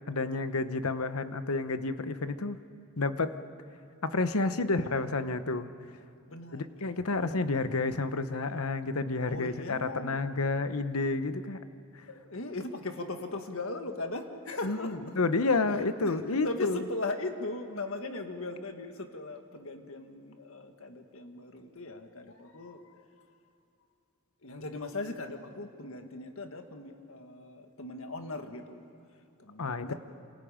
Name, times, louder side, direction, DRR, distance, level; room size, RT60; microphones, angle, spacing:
voice 1, 0.1-2.6 3.0-3.4 4.0-5.7 6.5-11.6 14.6-16.8 29.6-29.9, left 3 dB, 80° left, 11 dB, 1.0 m, -30 dB
voice 2, 6.3-6.7 7.2-7.5 9.3-10.2 12.1-15.1 15.7-23.4 24.4-29.9, left 2 dB, 65° left, 6 dB, 1.8 m, -39 dB
28.5 x 27.0 x 5.1 m, 2.6 s
head